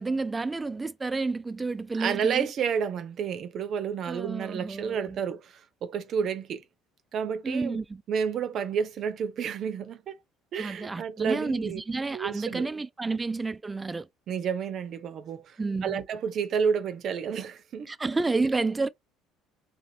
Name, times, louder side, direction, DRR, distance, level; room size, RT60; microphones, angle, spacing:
voice 1, 0.0-2.5 4.0-5.2 7.4-8.0 10.6-14.1 15.6-16.0 17.9-18.9, right 3 dB, 15° right, 0.3 m, -30 dB
voice 2, 1.9-5.5 5.8-6.6 7.1-7.8 8.1-10.2 10.5-11.8 12.1-12.7 14.3-15.6 15.8-17.9, right 7 dB, 50° right, 0.6 m, -30 dB
2.5 x 2.5 x 3.3 m
cardioid pair, 110°, 0 cm